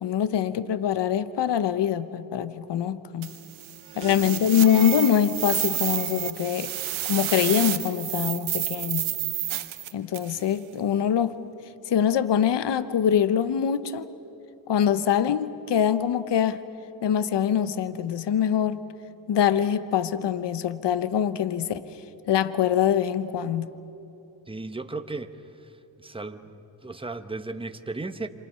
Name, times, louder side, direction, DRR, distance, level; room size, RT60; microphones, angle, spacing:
voice 1, 0.0-3.3 4.0-6.7 7.1-9.0 9.9-11.4 11.9-14.1 14.7-16.6 17.0-18.8 19.3-21.9 22.3-23.7, left 9 dB, 65° left, 14 dB, 1.0 m, -24 dB
sound 1, 3.2-10.4, right 13 dB, 85° right, 1.2 m, -30 dB
voice 2, 24.5-28.3, right 3 dB, 10° right, 8 dB, 1.2 m, -36 dB
27.0 x 27.0 x 5.7 m, 2.9 s
cardioid pair, 70°, 46 cm